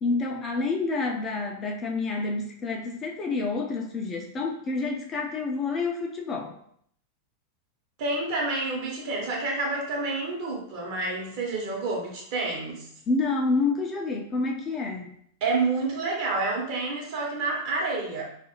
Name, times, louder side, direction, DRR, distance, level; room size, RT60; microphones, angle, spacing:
voice 1, 0.0-6.6 13.1-15.2, left 3 dB, 25° left, 1 dB, 0.4 m, -28 dB
voice 2, 8.0-12.9 15.4-18.2, right 3 dB, 45° right, -2 dB, 0.9 m, -29 dB
2.6 x 2.4 x 2.9 m, 0.65 s
figure-of-eight pair, 90°, 0 cm